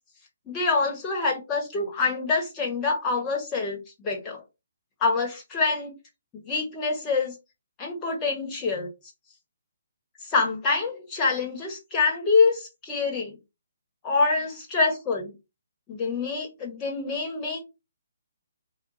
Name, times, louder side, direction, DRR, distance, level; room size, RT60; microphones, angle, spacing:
voice 1, 0.5-4.4 5.0-5.9 6.3-7.4 7.8-8.9 10.2-13.3 14.0-15.3 15.9-17.6, left 4 dB, 20° left, 1.6 m, -26 dB
4.3 x 2.6 x 4.2 m
figure-of-eight pair, 140°, 0 cm